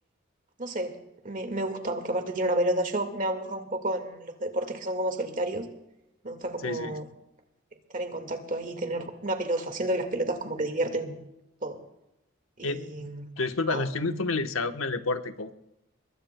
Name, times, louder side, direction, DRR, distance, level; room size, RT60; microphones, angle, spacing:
voice 1, 0.6-0.9 1.2-5.7 6.2-7.1 7.9-11.2 11.6-11.8 12.6-13.3 13.7-13.9, right 1 dB, 40° right, 5 dB, 1.7 m, -30 dB
voice 2, 6.6-7.0 12.6-15.5, left 3 dB, 85° left, 8 dB, 1.0 m, -30 dB
23.5 x 21.5 x 2.2 m, 0.91 s
head